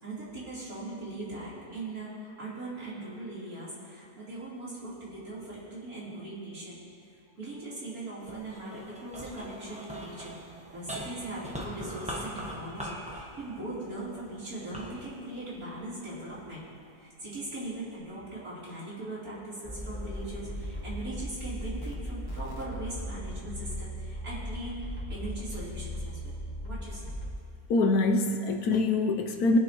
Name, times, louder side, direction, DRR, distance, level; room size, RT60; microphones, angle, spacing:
voice 1, 0.0-6.8 7.4-16.6 17.0-26.4 26.6-27.1, right 2 dB, 65° right, -8 dB, 4.1 m, -40 dB
sound 1, 8.2-16.7 17.3-18.0, equal, 5° right, 1.2 m, -42 dB
sound 2, 19.6-27.3, equal, 15° left, 1.4 m, -37 dB
voice 2, 27.7-29.6, left 3 dB, 75° left, 4 dB, 1.2 m, -24 dB
21.0 x 10.5 x 3.0 m, 2.3 s
omnidirectional pair, 1.7 m